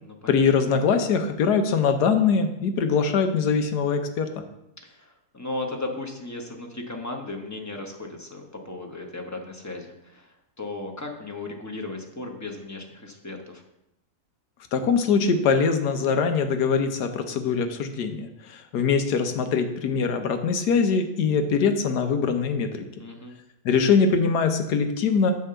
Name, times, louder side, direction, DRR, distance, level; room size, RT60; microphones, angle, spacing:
voice 1, 0.3-4.3 14.7-22.8 23.6-25.3, left 5 dB, 85° left, 7 dB, 1.5 m, -22 dB
voice 2, 4.8-13.6 23.0-23.3, left 2 dB, 15° left, 2 dB, 0.9 m, -36 dB
9.3 x 3.6 x 6.8 m, 0.85 s
omnidirectional pair, 1.7 m